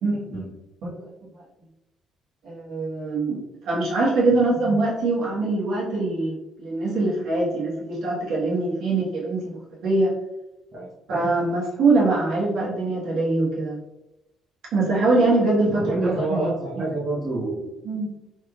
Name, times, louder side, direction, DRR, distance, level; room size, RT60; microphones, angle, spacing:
voice 1, 0.0-0.5 0.8-0.9 2.4-9.6 9.8-10.1 11.1-13.8 14.7-16.9 17.8-18.1, right 2 dB, 65° right, -5 dB, 1.4 m, -23 dB
voice 2, 15.7-17.7, right 2 dB, 40° right, -6 dB, 1.0 m, -27 dB
3.3 x 3.2 x 2.4 m, 0.93 s
cardioid pair, 140°, 0 cm